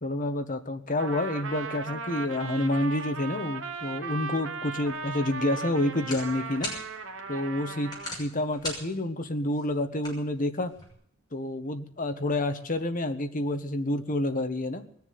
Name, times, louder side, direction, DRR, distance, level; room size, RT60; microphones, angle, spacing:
voice 1, 0.0-6.7 7.3-7.9 8.2-10.7 11.3-14.8, left 1 dB, 40° left, 8 dB, 1.3 m, -29 dB
Trumpet, 1.0-8.2, right 4 dB, 65° right, 1.6 m, -37 dB
sound 1, 4.8-10.9, left 1 dB, 20° left, 6.7 m, -42 dB
21.0 x 7.2 x 9.5 m, 0.64 s
head